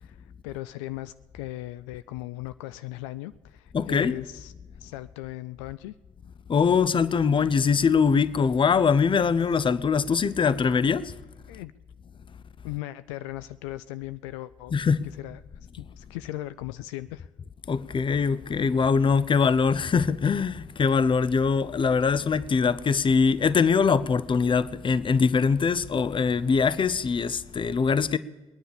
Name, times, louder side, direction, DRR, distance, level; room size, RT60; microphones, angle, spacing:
voice 1, 0.0-4.5 4.8-5.9 11.5-11.7 12.6-14.7 15.2-15.4 15.8-17.3, left 16 dB, 70° left, 0.4 m, -38 dB
voice 2, 3.7-4.1 6.5-11.1 14.7-15.1 17.7-28.2, left 5 dB, 30° left, 0.7 m, -22 dB
20.5 x 10.0 x 6.9 m
figure-of-eight pair, 45°, 16 cm